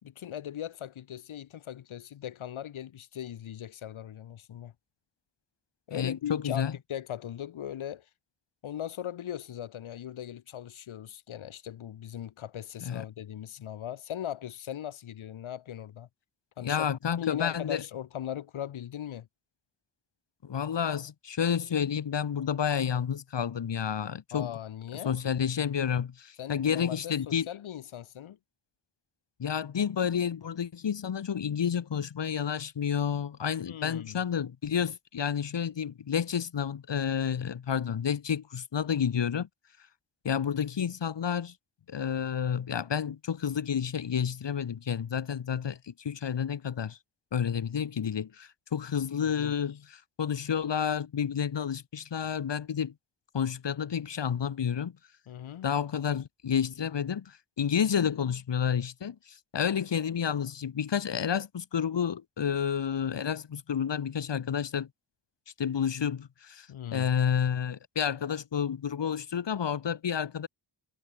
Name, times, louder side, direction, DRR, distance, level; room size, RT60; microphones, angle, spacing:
voice 1, 0.0-4.7 5.9-8.0 8.6-16.1 16.6-16.9 17.2-19.3 24.3-25.2 26.4-28.4 33.6-34.2 49.4-49.5 55.3-55.7 66.7-67.1, left 10 dB, 90° left, 3.2 m, -39 dB
voice 2, 5.9-6.7 12.8-13.0 16.6-17.8 20.4-24.5 24.9-27.5 29.4-39.5 40.2-41.5 41.9-47.0 47.3-52.9 53.3-55.0 55.6-64.9 65.6-70.5, left 8 dB, 60° left, 2.2 m, -30 dB
cardioid pair, 60°, 47 cm